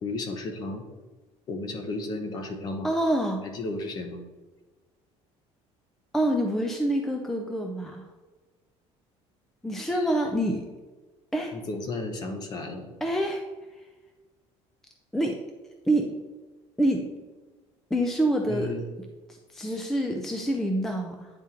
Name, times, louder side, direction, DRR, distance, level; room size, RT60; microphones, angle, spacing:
voice 1, 0.0-0.8 1.5-2.9 3.4-4.2 9.9-10.1 11.5-12.9 18.5-18.8, left 2 dB, 35° left, 4 dB, 0.8 m, -34 dB
voice 2, 2.8-3.4 6.1-8.1 9.6-10.6 11.3-11.5 13.0-13.4 15.1-15.4 15.9-16.1 16.8-17.2 17.9-18.7 19.3-21.3, right 1 dB, 5° left, 2 dB, 0.3 m, -26 dB
9.5 x 3.6 x 2.9 m, 1.2 s
cardioid pair, 165°, 12 cm